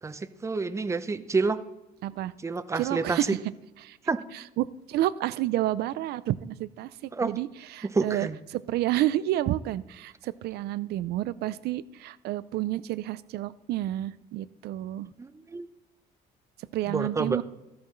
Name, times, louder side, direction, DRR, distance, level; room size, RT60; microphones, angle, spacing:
voice 1, 0.0-1.6 2.4-3.2 4.1-4.2 7.1-7.3 7.9-8.4 15.2-15.7 16.9-17.4, right 4 dB, 15° right, 13 dB, 0.6 m, -28 dB
voice 2, 2.0-2.3 2.8-3.4 3.8-4.0 4.3-15.1 16.7-17.4, right 14 dB, 75° right, 17 dB, 0.5 m, -30 dB
13.5 x 11.0 x 3.2 m, 0.99 s
cardioid pair, 110°, 17 cm